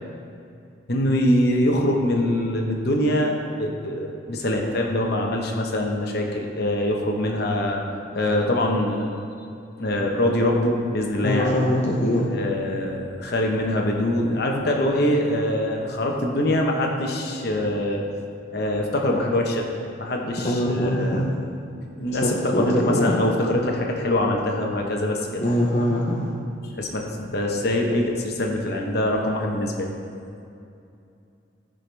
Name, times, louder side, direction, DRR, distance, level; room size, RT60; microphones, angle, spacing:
voice 1, 0.9-7.8 8.1-9.1 9.8-11.6 12.3-18.0 18.5-19.7 20.0-21.2 22.0-25.4 26.6-29.9, left 1 dB, 55° left, 1 dB, 1.0 m, -24 dB
voice 2, 11.2-12.3 20.4-21.2 22.2-23.2 25.4-26.3, equal, 35° left, -3 dB, 0.8 m, -23 dB
14.5 x 5.1 x 3.3 m, 2.6 s
head